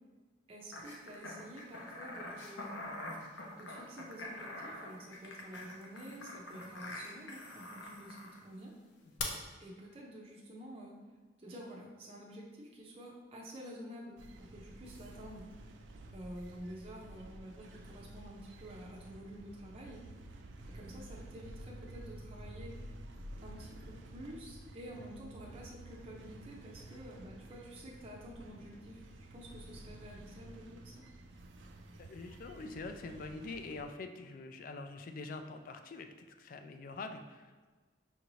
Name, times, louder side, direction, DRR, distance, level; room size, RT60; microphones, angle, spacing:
voice 1, 0.5-2.8 3.6-8.7 9.6-10.9 11.4-15.5 16.1-20.0 20.7-22.7 23.4-31.1, equal, 30° right, -3 dB, 0.5 m, -49 dB
sound 1, 0.7-8.4 9.2-9.3, left 2 dB, 90° left, 0.6 m, -45 dB
sound 2, 14.2-33.8, right 1 dB, 85° right, 0.4 m, -51 dB
voice 2, 31.9-36.1 36.4-37.7, left 3 dB, 50° left, 6 dB, 0.3 m, -45 dB
5.6 x 2.6 x 3.1 m, 1.4 s
head